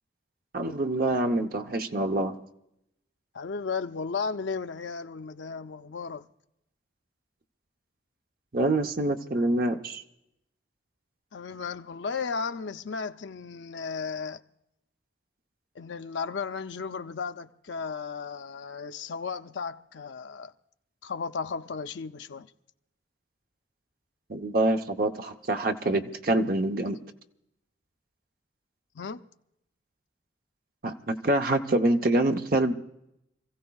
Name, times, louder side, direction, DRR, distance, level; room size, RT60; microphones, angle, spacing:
voice 1, 0.5-2.4 8.5-10.0 24.3-27.0 30.8-32.7, right 2 dB, 50° right, 0.9 m, -26 dB
voice 2, 3.3-6.3 11.3-14.4 15.7-20.5 21.0-22.5 28.9-29.3, left 5 dB, 70° left, 0.6 m, -35 dB
28.0 x 15.5 x 2.4 m
head